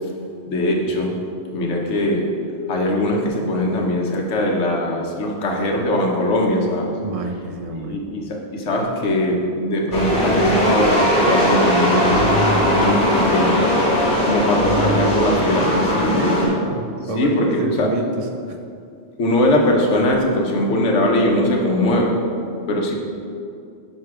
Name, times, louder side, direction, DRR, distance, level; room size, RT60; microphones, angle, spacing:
voice 1, 0.5-1.2 1.5-2.3 2.7-6.9 7.8-12.4 12.7-13.7 14.2-16.5 17.2-17.9 19.2-22.2 22.7-22.9, left 1 dB, 75° left, -1 dB, 1.3 m, -21 dB
voice 2, 7.0-8.0 16.1-18.6, right 2 dB, 35° right, 2 dB, 0.7 m, -27 dB
sound 1, 9.9-16.5, equal, 40° left, 1.9 m, -18 dB
10.5 x 3.5 x 4.8 m, 2.4 s
omnidirectional pair, 1.2 m